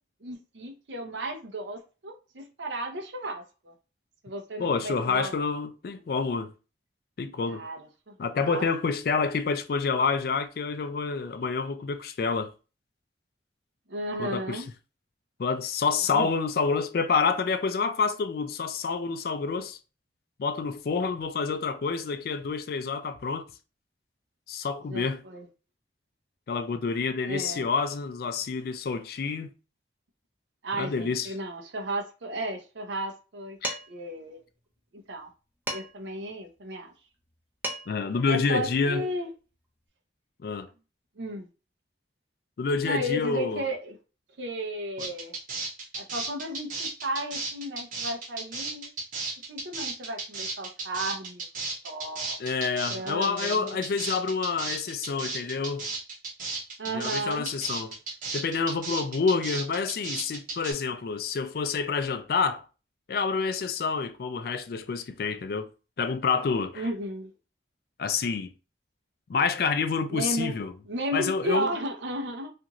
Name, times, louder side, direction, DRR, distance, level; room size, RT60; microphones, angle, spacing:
voice 1, 0.2-3.7 4.2-5.4 7.5-7.8 8.1-8.2 8.4-8.7 13.9-14.7 16.1-16.3 24.9-25.5 27.3-27.7 30.6-33.6 33.9-34.4 35.1-35.3 35.7-36.9 38.3-39.3 41.2-41.5 42.8-44.0 44.4-45.4 45.9-48.9 49.5-51.4 51.8-52.4 52.9-53.8 56.8-57.5 66.7-67.3 70.1-70.6 70.9-72.5, right 1 dB, 85° right, 0.7 m, -34 dB
voice 2, 4.6-6.5 7.2-7.7 8.2-12.5 14.2-14.6 15.4-19.8 20.4-23.5 24.5-25.2 26.5-29.5 30.8-31.3 33.6-33.8 37.9-39.1 40.4-40.7 42.6-43.7 45.0-45.1 52.4-55.9 56.9-58.0 58.3-62.6 63.1-65.7 66.0-66.9 68.0-68.5 69.3-70.7 71.1-71.7, left 5 dB, 55° left, 0.3 m, -28 dB
Dishes pots and pans, 33.6-34.1 35.7-36.1 37.3-37.4 37.6-38.1, right 1 dB, 10° right, 0.5 m, -35 dB
sound 1, 45.0-60.7, right 3 dB, 45° right, 0.8 m, -34 dB
2.6 x 2.4 x 2.9 m
head